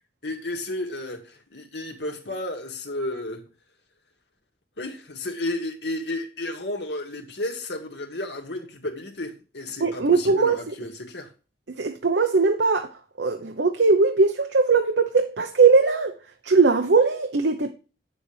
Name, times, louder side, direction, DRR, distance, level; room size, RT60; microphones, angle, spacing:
voice 1, 0.2-3.5 4.8-11.3, left 1 dB, 75° left, 2.0 m, -32 dB
voice 2, 9.8-10.6 11.8-12.9 13.2-16.2 16.4-17.7, right 4 dB, 90° right, 0.8 m, -20 dB
8.9 x 7.2 x 3.3 m
head